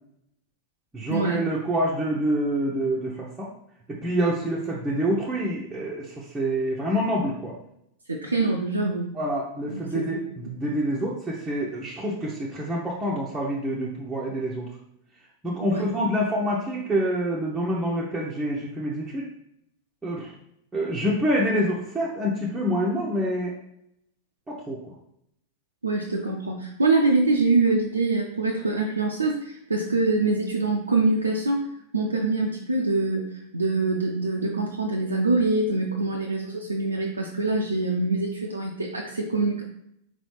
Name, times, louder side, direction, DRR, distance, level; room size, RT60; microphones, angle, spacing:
voice 1, 0.9-3.5 3.9-7.6 9.1-14.7 15.4-19.3 20.0-20.3 20.7-23.5 24.5-24.9, equal, 10° right, -5 dB, 0.6 m, -27 dB
voice 2, 8.1-9.1 9.7-10.1 15.6-15.8 25.8-39.6, right 3 dB, 80° right, 1 dB, 0.4 m, -24 dB
4.0 x 3.0 x 3.2 m, 0.77 s
figure-of-eight pair, 90°, 0 cm